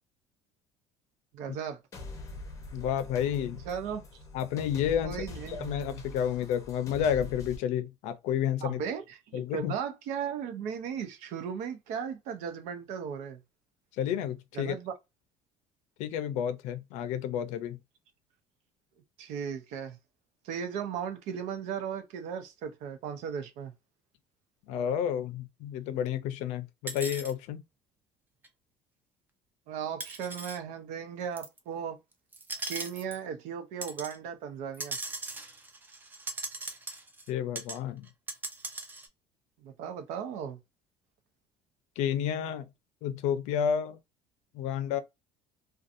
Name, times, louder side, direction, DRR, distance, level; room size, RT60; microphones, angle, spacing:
voice 1, 1.3-1.8 3.7-4.0 5.0-5.9 8.6-13.4 14.5-14.9 19.2-20.0 20.4-23.7 29.7-32.0 32.7-35.0 39.6-40.6, right 7 dB, 75° right, 0.7 m, -36 dB
sound 1, 1.9-7.6, left 2 dB, 25° left, 0.7 m, -43 dB
voice 2, 2.7-3.6 4.3-8.8 9.3-9.7 14.0-14.8 16.0-17.8 24.7-27.6 37.3-38.1 42.0-42.7 43.0-44.0 44.5-45.0, left 9 dB, 70° left, 0.5 m, -30 dB
sound 2, 26.9-27.3 28.4-28.5 30.0-30.6 31.4-31.6 32.3-33.2 33.8-34.2 34.7-37.3 37.6-37.8 38.1-39.1, right 2 dB, 15° right, 0.4 m, -39 dB
2.6 x 2.3 x 2.5 m
cardioid pair, 150°, 12 cm